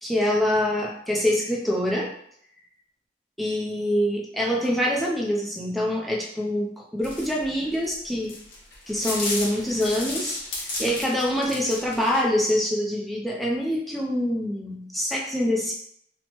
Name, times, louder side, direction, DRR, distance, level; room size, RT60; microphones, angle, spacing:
voice 1, 0.0-2.1 3.4-8.4 8.9-10.4 10.8-15.7, equal, ahead, -4 dB, 0.4 m, -25 dB
sound 1, 7.0-12.2, left 2 dB, 90° left, 0.8 m, -33 dB
3.0 x 2.1 x 2.8 m, 0.68 s
head